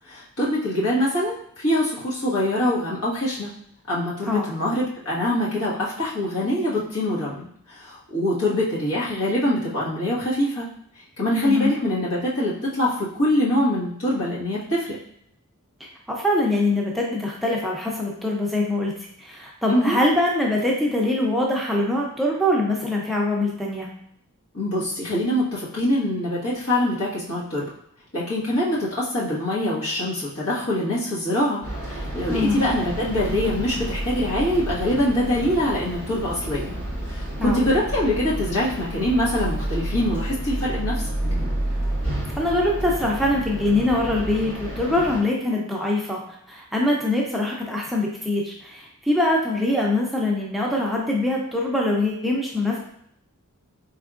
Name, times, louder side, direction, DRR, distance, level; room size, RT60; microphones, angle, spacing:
voice 1, 0.1-3.5 3.9-10.7 11.2-15.0 19.7-20.0 24.5-27.6 28.1-31.6 31.9-36.8 37.1-41.0, left 1 dB, 70° left, -7 dB, 1.5 m, -24 dB
voice 2, 11.3-11.8 15.8-18.9 19.2-23.9 32.3-32.7 37.4-37.6 42.4-46.2 46.5-52.8, left 1 dB, ahead, -3 dB, 0.5 m, -23 dB
sound 1, 31.6-45.2, right 1 dB, 30° left, 1.6 m, -30 dB
4.4 x 3.4 x 2.4 m, 0.69 s
head